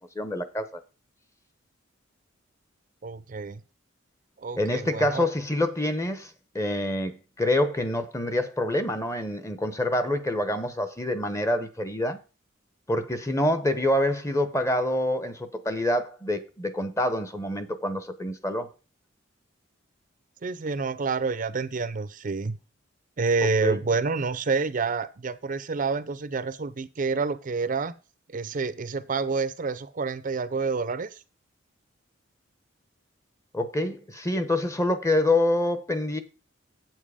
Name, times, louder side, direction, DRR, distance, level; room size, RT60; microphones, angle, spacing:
voice 1, 0.1-0.7 4.6-12.2 12.9-18.7 23.6-23.8 33.5-36.2, left 1 dB, 15° left, 0.8 m, -26 dB
voice 2, 3.0-3.6 4.4-5.3 20.4-22.6 23.2-27.9 28.3-31.2, right 4 dB, 45° right, 0.5 m, -28 dB
8.0 x 7.3 x 4.9 m
head